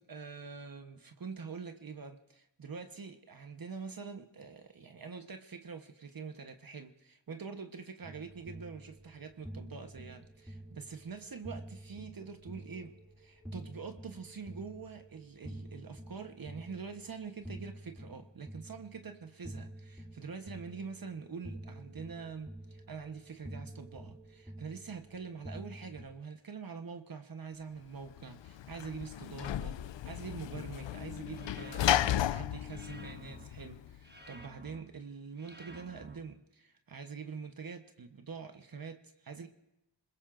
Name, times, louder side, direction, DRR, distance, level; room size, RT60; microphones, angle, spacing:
voice 1, 0.0-29.8 30.0-39.5, right 5 dB, 50° right, 6 dB, 1.1 m, -45 dB
sound 1, 8.0-26.1, right 1 dB, 5° right, 3.1 m, -49 dB
Sliding door / Slam, 28.1-34.0, left 11 dB, 80° left, 0.5 m, -34 dB
sound 2, 31.3-32.1 32.7-33.5 34.0-34.8 35.4-36.1, right 2 dB, 25° right, 1.4 m, -52 dB
27.0 x 21.0 x 2.6 m, 0.90 s
wide cardioid pair, 90°, 43 cm